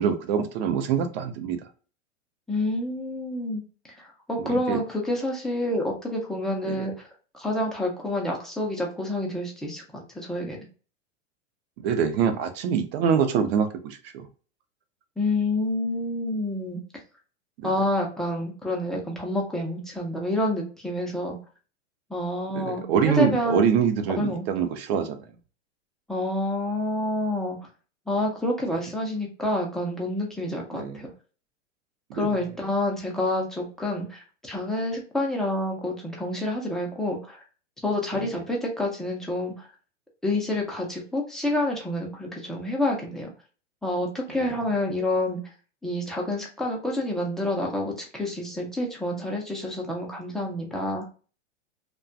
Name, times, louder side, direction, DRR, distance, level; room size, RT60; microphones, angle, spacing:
voice 1, 0.0-1.6 4.4-4.8 6.7-6.9 11.8-14.3 17.6-17.7 22.5-25.2 30.7-31.0 32.1-32.3 38.1-38.4 44.4-44.5, right 7 dB, 55° right, 8 dB, 0.6 m, -25 dB
voice 2, 2.5-3.6 4.0-6.9 7.3-10.6 15.2-16.8 17.6-21.4 22.1-23.6 24.1-24.5 26.1-27.6 28.1-31.1 32.1-37.4 37.8-39.7 40.2-43.3 43.8-45.4 45.8-51.1, left 1 dB, ahead, -2 dB, 0.3 m, -28 dB
2.4 x 2.2 x 2.4 m, 0.38 s
hypercardioid pair, 110°, 37 cm